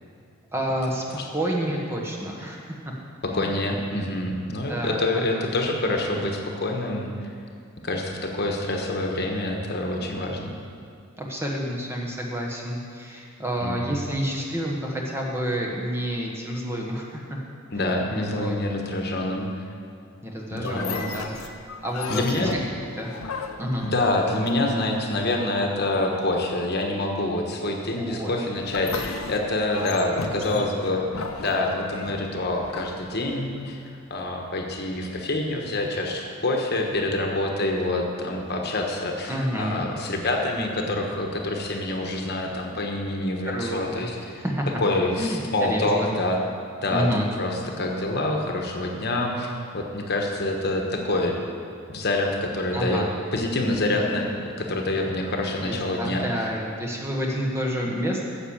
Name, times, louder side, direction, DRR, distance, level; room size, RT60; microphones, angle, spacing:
voice 1, 0.5-2.7 3.3-3.5 4.5-5.5 11.2-17.2 17.8-17.9 18.3-18.6 20.2-21.3 21.8-22.6 23.0-23.1 23.6-23.9 28.0-28.3 39.3-39.9 43.5-44.7 45.2-46.1 46.9-47.3 52.7-53.1 55.6-58.2, equal, 10° right, -1 dB, 1.1 m, -29 dB
voice 2, 3.2-7.3 7.8-10.6 13.6-14.0 17.7-19.5 20.5-21.0 22.1-22.5 23.8-29.0 29.3-44.4 44.8-46.4 46.8-51.4 51.9-53.0 53.3-56.3, left 2 dB, 50° left, 1 dB, 1.2 m, -26 dB
sound 1, 20.6-24.9 28.6-33.7, left 4 dB, 75° left, 0.8 m, -36 dB
9.9 x 7.2 x 7.2 m, 2.3 s
head